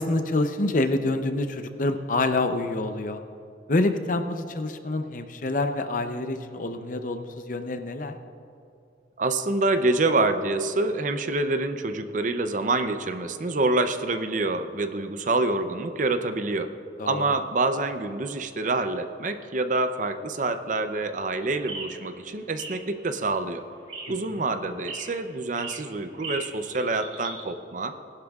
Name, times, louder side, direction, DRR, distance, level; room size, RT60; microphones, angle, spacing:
voice 1, 0.0-3.2 3.7-8.2 17.0-17.3 24.1-24.5, left 2 dB, 45° left, 8 dB, 0.6 m, -27 dB
voice 2, 9.2-16.7 17.1-23.6 24.1-27.9, right 2 dB, 40° right, 8 dB, 0.6 m, -26 dB
sound 1, 20.9-27.4, right 3 dB, 85° right, 2.2 m, -40 dB
19.5 x 11.5 x 2.4 m, 2.7 s
head